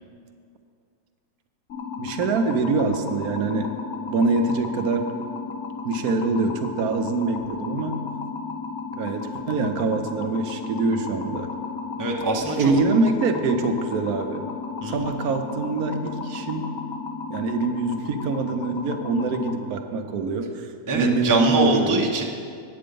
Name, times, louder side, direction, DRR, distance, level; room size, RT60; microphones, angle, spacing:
sound 1, 1.7-19.5, left 5 dB, 65° left, 1.2 m, -34 dB
voice 1, 2.0-3.7 4.1-5.1 5.8-8.0 8.9-11.5 12.4-14.5 14.8-16.7 17.3-22.1, right 3 dB, 80° right, 6 dB, 1.2 m, -24 dB
voice 2, 12.0-12.7 14.8-15.1 20.9-22.2, right 2 dB, 20° right, 0 dB, 0.6 m, -23 dB
8.7 x 8.5 x 5.2 m, 2.2 s
omnidirectional pair, 1.6 m